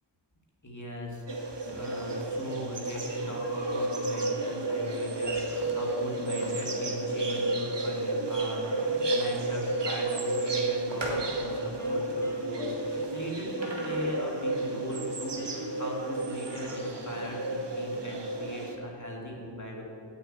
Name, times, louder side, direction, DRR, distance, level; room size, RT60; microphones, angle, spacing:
voice 1, 0.6-19.8, left 1 dB, 40° left, -3 dB, 2.4 m, -39 dB
sound 1, 1.3-18.7, right 2 dB, 70° right, 1.1 m, -32 dB
sound 2, 4.2-12.9 13.6-17.1, equal, 90° right, 1.8 m, -46 dB
Wind instrument woodwind instrument, 10.9-15.1 15.3-18.3, equal, 5° left, 1.3 m, -50 dB
8.8 x 7.0 x 8.7 m, 2.7 s
wide cardioid pair, 45°, 44 cm